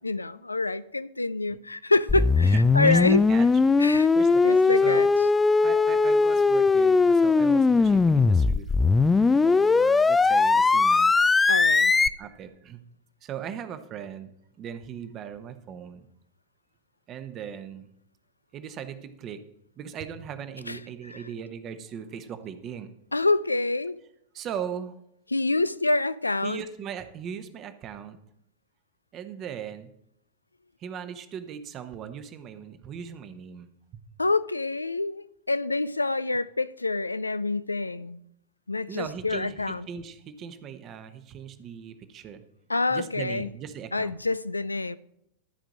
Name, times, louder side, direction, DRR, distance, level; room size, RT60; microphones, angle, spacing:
voice 1, 0.0-3.2 3.8-4.1 4.4-5.1 11.5-11.9 20.7-20.8 21.1-21.2 23.1-24.0 25.3-26.6 34.2-38.2 38.7-39.9 42.7-43.5 43.9-45.0, left 3 dB, 80° left, 0.4 m, -27 dB
sound 1, 2.1-12.1, left 4 dB, 10° left, 0.4 m, -20 dB
voice 2, 2.4-3.5 4.1-5.1 5.6-9.1 9.4-11.5 12.2-12.8 13.2-14.3 14.6-16.1 17.1-17.9 18.5-19.4 19.8-22.9 24.3-24.9 26.4-28.2 29.1-29.9 30.8-34.0 38.9-42.4 42.9-44.1, right 8 dB, 30° right, 1.0 m, -39 dB
12.5 x 5.1 x 7.4 m
figure-of-eight pair, 90°, 0 cm